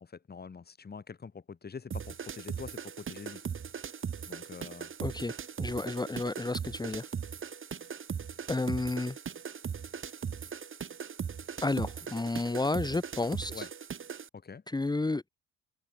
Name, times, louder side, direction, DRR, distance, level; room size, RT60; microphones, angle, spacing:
voice 1, 0.3-3.4 4.3-4.9 13.5-13.7 14.4-14.6, left 5 dB, 30° left, 2.0 m, -45 dB
sound 1, 1.9-14.3, right 7 dB, 40° right, 2.2 m, -39 dB
voice 2, 5.0-7.1 8.5-9.2 11.6-13.7 14.7-15.4, left 2 dB, 15° left, 1.3 m, -32 dB
cardioid pair, 90°, 30 cm